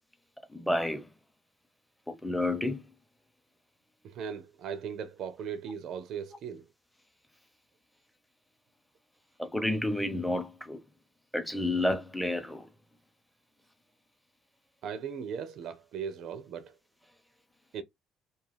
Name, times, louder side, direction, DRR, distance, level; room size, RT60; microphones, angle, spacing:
voice 1, 0.5-1.0 2.1-2.8 9.4-10.8 11.3-12.7, left 1 dB, 5° left, 0.6 m, -30 dB
voice 2, 4.0-6.7 14.8-16.7 17.7-17.8, right 7 dB, 65° right, 0.4 m, -38 dB
2.3 x 2.3 x 3.2 m
supercardioid pair, 70°, 0 cm